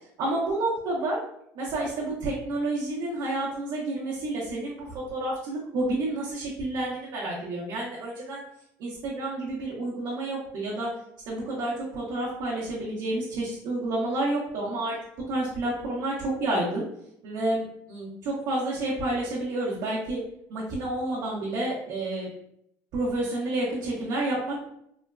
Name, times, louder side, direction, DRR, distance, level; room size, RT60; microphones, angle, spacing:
voice 1, 0.2-1.2 1.5-8.4 8.8-10.9 11.3-14.9 15.3-16.8 17.2-17.6 17.9-20.2 20.5-22.3 22.9-24.6, right 2 dB, 75° right, -8 dB, 1.0 m, -29 dB
4.2 x 2.2 x 2.4 m, 0.73 s
cardioid pair, 110°, 7 cm